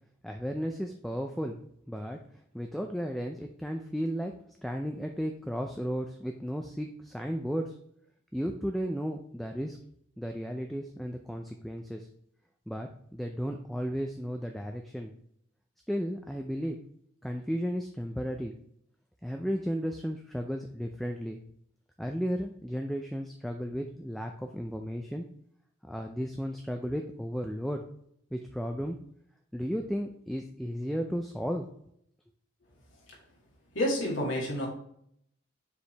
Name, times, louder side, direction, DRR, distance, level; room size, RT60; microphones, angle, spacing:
voice 1, 0.2-1.6 1.9-2.2 2.5-4.3 4.6-7.8 8.3-9.8 10.2-12.1 12.7-15.1 15.9-16.8 17.2-18.5 19.2-21.4 22.0-25.3 25.9-27.8 28.3-29.0 29.5-31.7, equal, ahead, 3 dB, 0.4 m, -34 dB
voice 2, 33.7-34.7, equal, 90° left, -3 dB, 2.0 m, -29 dB
6.9 x 4.7 x 3.3 m, 0.69 s
head